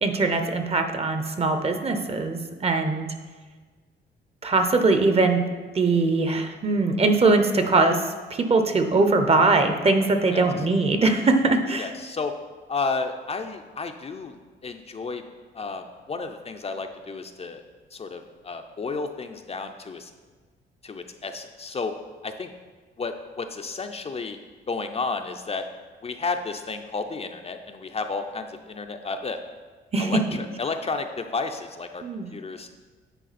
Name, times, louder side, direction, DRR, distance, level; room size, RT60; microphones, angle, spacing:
voice 1, 0.0-3.1 4.4-5.4 5.7-11.9 29.9-30.4 32.0-32.3, right 3 dB, 30° right, 7 dB, 0.8 m, -21 dB
voice 2, 11.8-12.3 12.7-14.4 14.6-15.2 15.5-17.6 17.9-20.1 20.8-21.9 22.2-22.5 23.0-24.4 24.7-25.7 26.0-29.4 30.0-32.0 32.3-32.7, left 4 dB, 30° left, 6 dB, 0.5 m, -32 dB
9.1 x 4.8 x 4.1 m, 1.4 s
cardioid pair, 90°, 20 cm